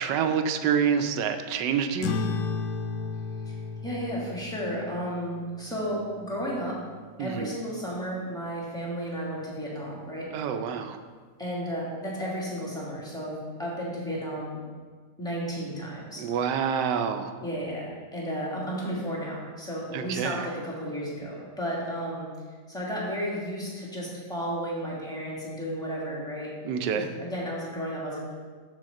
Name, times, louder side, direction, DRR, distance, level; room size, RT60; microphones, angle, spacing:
voice 1, 0.0-2.2 7.2-7.5 10.3-11.0 16.2-17.3 19.9-20.5 26.6-27.1, right 7 dB, 80° right, 7 dB, 1.2 m, -27 dB
sound 1, 2.0-6.9, left 5 dB, 90° left, 0.6 m, -34 dB
voice 2, 3.8-6.7 7.2-10.3 11.4-14.6 15.2-16.2 17.4-22.3 22.7-26.5 26.9-28.3, equal, ahead, -5 dB, 1.4 m, -33 dB
6.3 x 4.2 x 6.4 m, 1.5 s
omnidirectional pair, 1.9 m